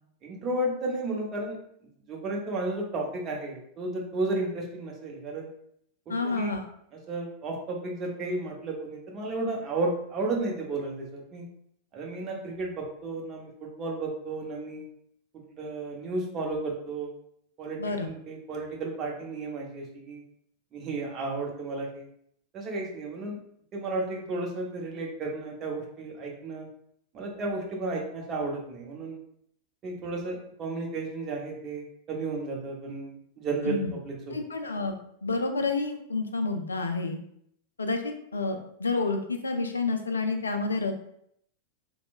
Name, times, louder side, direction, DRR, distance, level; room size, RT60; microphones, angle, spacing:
voice 1, 0.2-1.6 2.1-5.5 6.1-6.5 7.1-11.5 11.9-14.8 15.5-17.1 17.6-20.2 20.7-22.1 22.5-23.4 23.7-26.7 27.1-29.2 29.8-34.4, right 2 dB, 30° right, 0 dB, 0.7 m, -33 dB
voice 2, 6.1-6.6 17.8-18.1 33.6-33.9 34.3-35.0 35.2-37.2 37.8-40.9, left 3 dB, 75° left, 5 dB, 0.3 m, -29 dB
3.0 x 2.0 x 2.4 m, 0.70 s
figure-of-eight pair, 90°, 0 cm